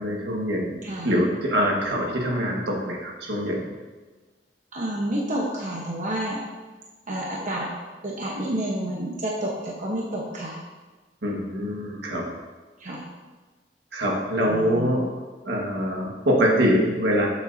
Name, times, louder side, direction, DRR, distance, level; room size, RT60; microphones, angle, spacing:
voice 1, 0.0-3.7 11.2-12.3 13.9-15.1 15.4-17.3, equal, 70° right, -1 dB, 1.7 m, -24 dB
voice 2, 4.7-6.4 7.1-7.7 8.0-10.6 12.8-13.0 14.5-14.9, right 1 dB, 45° right, -3 dB, 1.2 m, -29 dB
12.0 x 7.2 x 2.8 m, 1.3 s
head